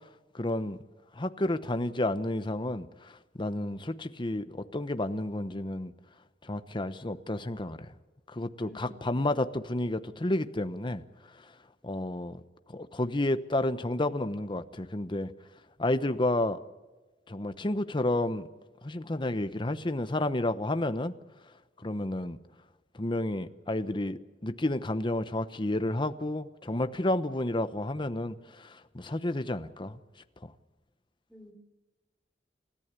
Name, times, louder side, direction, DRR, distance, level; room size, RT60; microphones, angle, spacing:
voice 1, 0.3-0.8 1.1-5.9 6.4-7.9 8.3-11.0 11.8-12.4 12.7-15.3 15.8-16.6 17.3-18.5 18.8-21.1 21.8-22.4 22.9-30.0 30.4-30.5, left 1 dB, 25° left, 11 dB, 1.0 m, -31 dB
voice 2, 8.6-9.2 31.3-31.5, left 1 dB, 5° left, 3 dB, 3.7 m, -52 dB
29.0 x 14.5 x 8.3 m, 1.2 s
head